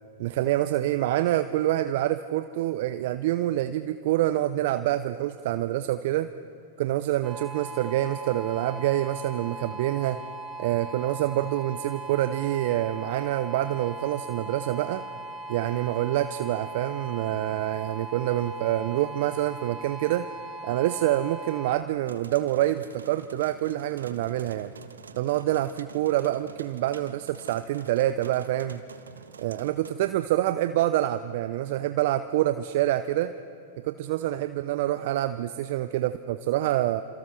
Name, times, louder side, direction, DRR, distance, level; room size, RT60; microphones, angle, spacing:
voice 1, 0.2-6.3 6.8-10.2 10.6-15.0 15.5-20.2 20.6-24.7 25.2-28.8 29.4-33.3 33.8-37.0, right 14 dB, 55° right, 11 dB, 0.7 m, -26 dB
sound 1, 7.2-21.8, right 2 dB, 20° right, 3.7 m, -39 dB
sound 2, 22.1-29.9, right 5 dB, 80° right, 1.5 m, -47 dB
28.0 x 27.0 x 6.3 m, 2.5 s
figure-of-eight pair, 95°, 0 cm